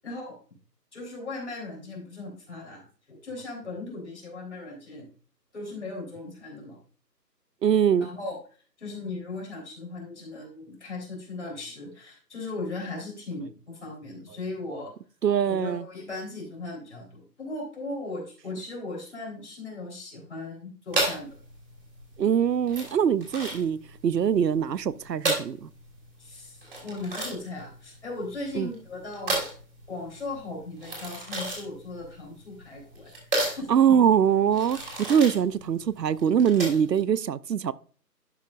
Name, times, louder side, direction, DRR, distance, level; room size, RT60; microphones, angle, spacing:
voice 1, 0.0-0.4 0.9-5.1 5.5-6.8 8.0-8.4 8.8-14.9 15.5-21.3 26.2-29.4 29.9-33.1 33.5-34.0, left 2 dB, 40° left, 3.7 m, -38 dB
voice 2, 7.6-8.1 15.2-15.8 22.2-23.8 24.0-25.7 28.5-28.7 33.7-34.8 35.1-37.7, right 8 dB, 75° right, 0.6 m, -23 dB
sound 1, 20.9-37.0, right 2 dB, 35° right, 3.1 m, -33 dB
11.5 x 6.2 x 2.5 m
figure-of-eight pair, 170°, 50 cm